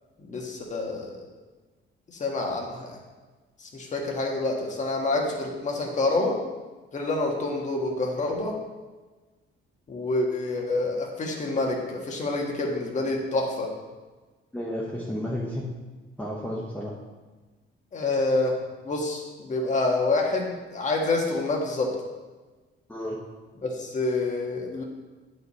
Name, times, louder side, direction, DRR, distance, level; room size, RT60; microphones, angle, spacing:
voice 1, 0.3-1.3 2.1-3.0 3.6-6.4 6.9-8.6 9.9-13.7 17.9-18.5 18.8-21.9 23.6-24.8, left 2 dB, 35° left, 0 dB, 1.6 m, -27 dB
voice 2, 14.5-15.6 16.2-16.9 22.9-23.2, equal, 5° left, -6 dB, 1.2 m, -32 dB
10.0 x 5.3 x 4.2 m, 1.3 s
cardioid pair, 140°, 20 cm